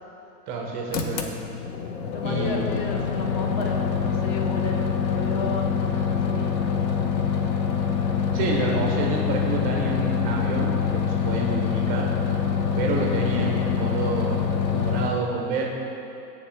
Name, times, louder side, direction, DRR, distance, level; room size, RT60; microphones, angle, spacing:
voice 1, 0.5-1.3 2.2-2.7 8.3-12.1 12.8-15.6, right 3 dB, 20° right, -1 dB, 0.4 m, -29 dB
sound 1, 0.9-15.1, left 7 dB, 75° left, 0.7 m, -25 dB
voice 2, 2.1-6.6, left 3 dB, 35° left, 1 dB, 0.7 m, -33 dB
9.4 x 3.2 x 3.1 m, 2.9 s
hypercardioid pair, 120°, 49 cm